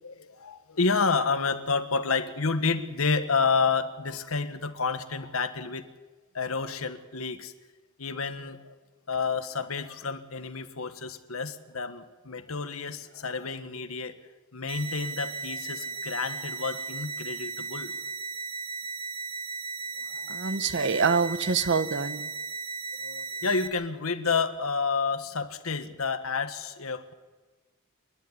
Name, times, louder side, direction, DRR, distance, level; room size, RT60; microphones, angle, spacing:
voice 1, 0.0-5.9 6.3-7.5 8.0-8.7 9.1-14.2 14.5-17.9 20.0-20.6 23.0-27.1, left 4 dB, 75° left, 10 dB, 1.4 m, -30 dB
sound 1, 14.7-23.7, right 4 dB, 25° right, 1.6 m, -36 dB
voice 2, 20.3-22.3, right 5 dB, 55° right, 14 dB, 0.9 m, -26 dB
28.5 x 11.0 x 9.8 m, 1.3 s
head